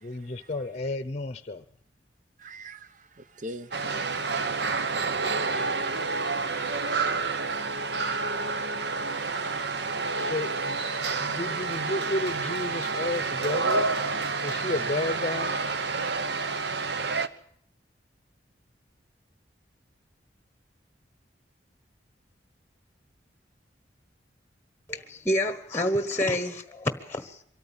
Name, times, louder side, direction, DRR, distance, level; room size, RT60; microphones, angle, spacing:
voice 1, 0.0-1.6 10.2-10.8 11.2-14.0 14.4-15.6, left 2 dB, 40° left, 0.8 m, -32 dB
voice 2, 2.4-3.8, equal, 45° right, 0.9 m, -44 dB
sound 1, 3.7-17.3, right 4 dB, 65° right, 1.1 m, -29 dB
voice 3, 24.9-27.4, left 1 dB, 10° left, 1.2 m, -28 dB
24.0 x 13.5 x 8.9 m
head